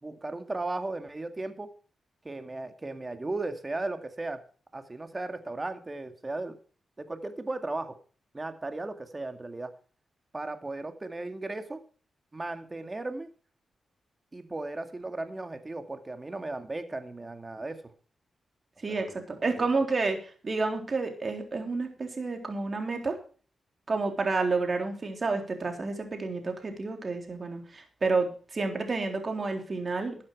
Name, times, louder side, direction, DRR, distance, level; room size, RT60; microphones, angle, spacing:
voice 1, 0.0-1.7 2.2-4.4 4.7-6.6 7.0-8.0 8.3-9.7 10.3-11.8 12.3-13.3 14.3-17.8 18.9-19.2 19.5-19.7, right 2 dB, 30° right, 8 dB, 2.0 m, -36 dB
voice 2, 18.8-23.2 23.9-30.3, right 3 dB, 45° right, 4 dB, 3.6 m, -30 dB
13.0 x 8.6 x 4.8 m, 0.39 s
cardioid pair, 55°, 0 cm